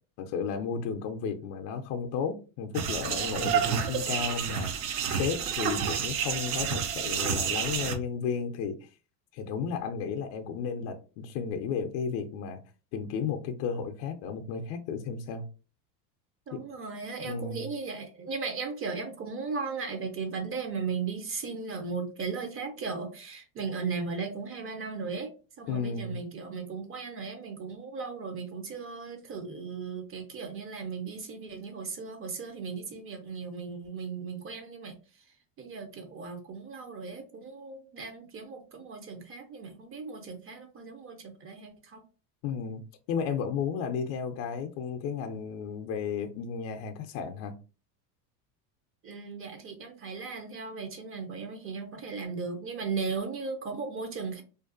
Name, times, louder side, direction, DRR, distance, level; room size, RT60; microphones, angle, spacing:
voice 1, 0.2-4.8 5.1-8.9 9.3-12.6 12.9-15.5 17.2-17.7 25.7-26.2 42.4-42.8 43.1-47.5, left 6 dB, 55° left, 0.5 m, -33 dB
sound 1, 2.7-8.0, right 7 dB, 75° right, 0.7 m, -29 dB
voice 2, 16.5-25.3 25.6-35.0 35.6-42.0 49.0-54.4, right 5 dB, 30° right, 0.5 m, -37 dB
2.5 x 2.3 x 2.5 m
supercardioid pair, 105°, 47 cm